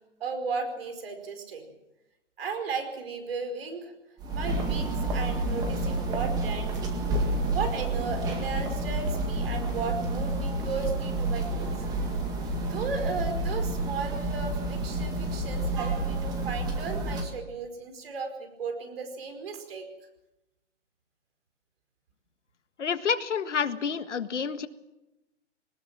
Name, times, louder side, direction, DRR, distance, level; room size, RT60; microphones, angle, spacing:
voice 1, 0.2-1.7 2.4-3.9 4.3-7.0 7.5-11.7 12.6-19.9, right 4 dB, 55° right, 7 dB, 5.0 m, -35 dB
sound 1, 4.2-17.2, right 2 dB, 10° right, 1.9 m, -29 dB
voice 2, 22.8-24.7, left 6 dB, 75° left, 10 dB, 1.7 m, -29 dB
22.0 x 19.5 x 7.5 m, 0.95 s
hypercardioid pair, 160°, 36 cm